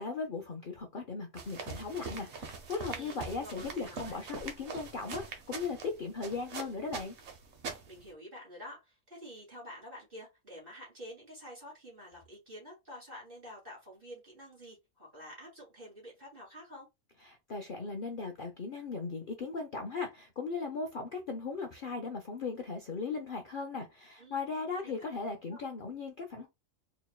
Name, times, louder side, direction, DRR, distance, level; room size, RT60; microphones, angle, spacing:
voice 1, 0.0-7.2 17.2-26.5, left 4 dB, 50° left, 0.7 m, -38 dB
sound 1, 1.4-8.1, right 4 dB, 60° right, 1.1 m, -43 dB
voice 2, 2.9-4.2 7.9-16.9 24.2-24.4 24.8-25.1 25.5-25.6, equal, 40° right, 2.7 m, -49 dB
4.3 x 3.0 x 2.3 m
omnidirectional pair, 1.4 m